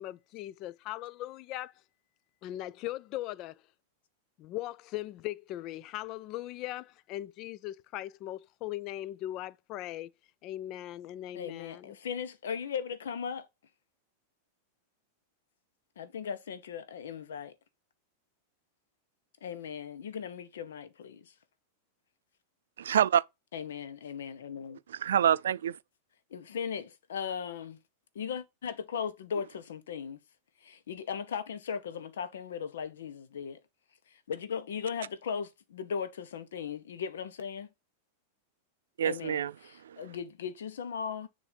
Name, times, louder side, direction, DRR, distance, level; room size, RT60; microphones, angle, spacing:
voice 1, 0.0-1.7 2.4-3.6 4.4-10.1 10.4-12.0, left 14 dB, 45° left, 0.4 m, -39 dB
voice 2, 11.3-13.5 16.0-17.5 19.4-21.3 23.5-24.8 26.3-27.8 28.1-30.2 30.6-33.6 34.3-37.7 39.0-41.3, left 7 dB, 85° left, 0.9 m, -37 dB
voice 3, 22.8-23.2 24.9-25.8 39.0-39.5 39.8-40.0, right 9 dB, 90° right, 0.3 m, -26 dB
7.1 x 2.6 x 5.1 m
hypercardioid pair, 125°, 0 cm